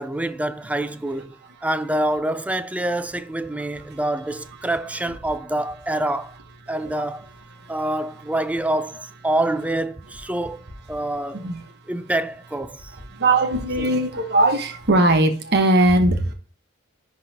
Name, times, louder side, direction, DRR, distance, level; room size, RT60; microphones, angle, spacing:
voice 1, 0.0-6.3 6.7-7.3 7.7-10.6 10.9-11.5 11.9-12.9 13.8-13.9, right 1 dB, 5° right, 0.4 m, -26 dB
voice 2, 13.1-16.3, right 2 dB, 55° right, 1.2 m, -19 dB
10.5 x 4.0 x 2.9 m
head